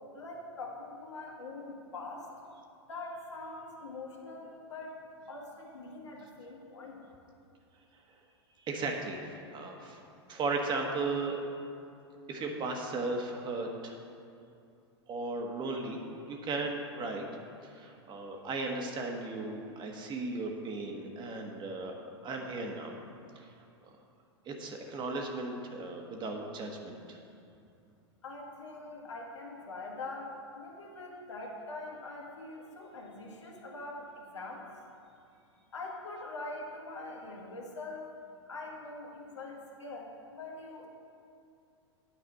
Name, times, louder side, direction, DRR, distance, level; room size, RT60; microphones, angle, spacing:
voice 1, 0.1-2.3 2.9-5.0 5.3-7.0 28.2-34.7 35.7-38.1 38.5-40.9, left 2 dB, 80° left, -1 dB, 1.8 m, -43 dB
voice 2, 8.6-10.0 10.3-11.4 12.3-14.0 15.1-16.0 16.3-17.2 17.6-22.9 23.3-23.5 24.4-27.2, right 3 dB, 30° right, 1 dB, 1.4 m, -36 dB
9.4 x 4.9 x 7.7 m, 2.5 s
hypercardioid pair, 100°, 15 cm